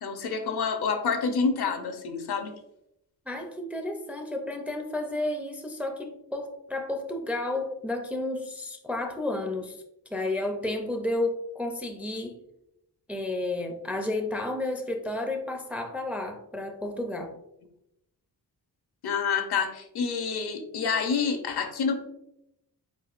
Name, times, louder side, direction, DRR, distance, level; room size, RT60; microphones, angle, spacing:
voice 1, 0.0-2.5 19.0-21.9, left 5 dB, 75° left, 6 dB, 0.8 m, -28 dB
voice 2, 3.3-9.8 10.1-12.4 13.1-17.3, left 2 dB, 5° right, 3 dB, 0.4 m, -31 dB
4.7 x 4.2 x 2.4 m, 0.83 s
wide cardioid pair, 145°, 39 cm